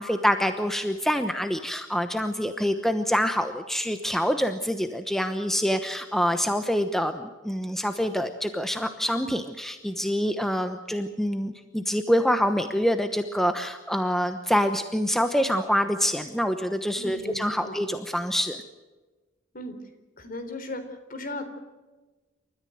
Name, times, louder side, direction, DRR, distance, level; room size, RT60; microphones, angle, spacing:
voice 1, 0.0-18.6, equal, ahead, 8 dB, 1.0 m, -26 dB
voice 2, 17.0-17.8 19.5-19.7 20.2-20.8 21.1-21.4, left 2 dB, 45° left, 7 dB, 3.9 m, -36 dB
29.0 x 14.0 x 7.9 m, 1.2 s
head